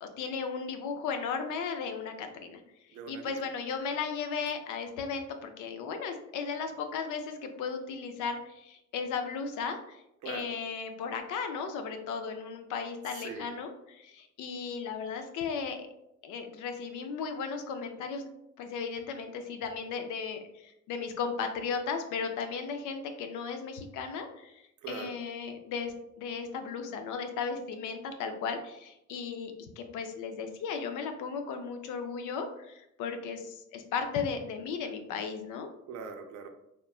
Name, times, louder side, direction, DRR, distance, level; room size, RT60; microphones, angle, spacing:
voice 1, 0.0-2.6 2.9-15.9 16.2-18.3 18.6-35.7, left 5 dB, 85° left, 6 dB, 0.5 m, -36 dB
voice 2, 2.9-3.3 10.2-10.5 13.2-13.5 24.8-25.1 35.9-36.5, right 5 dB, 75° right, 5 dB, 0.5 m, -41 dB
3.0 x 2.1 x 2.3 m, 0.83 s
cardioid pair, 90°, 30 cm